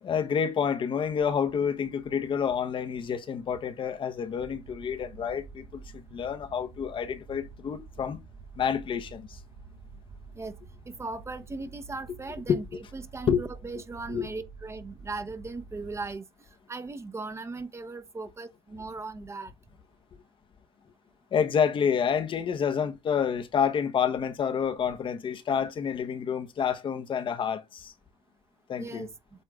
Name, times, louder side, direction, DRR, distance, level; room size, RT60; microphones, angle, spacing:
voice 1, 0.0-8.2 8.6-9.4 12.5-12.6 13.3-13.4 14.1-14.3 21.3-27.9 28.7-29.1, left 7 dB, 50° left, 1.1 m, -28 dB
Moving Low Frequencies, 4.4-16.2, right 4 dB, 55° right, 1.2 m, -49 dB
voice 2, 10.9-16.2 16.7-19.5 28.8-29.1, right 3 dB, 25° right, 1.0 m, -38 dB
8.1 x 3.6 x 3.6 m
cardioid pair, 85°, 11 cm